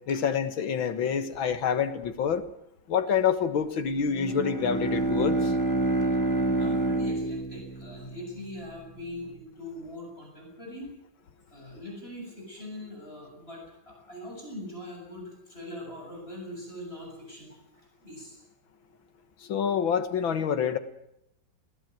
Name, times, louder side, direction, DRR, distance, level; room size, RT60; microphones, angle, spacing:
voice 1, 0.1-2.4 2.9-5.5 19.5-20.8, left 7 dB, 75° left, 10 dB, 2.2 m, -27 dB
Bowed string instrument, 4.1-8.7, right 2 dB, 10° left, 1.8 m, -28 dB
voice 2, 6.6-10.9 11.5-17.6 18.0-18.4, left 1 dB, 30° left, -1 dB, 7.8 m, -42 dB
21.0 x 18.0 x 9.3 m, 0.79 s
omnidirectional pair, 2.2 m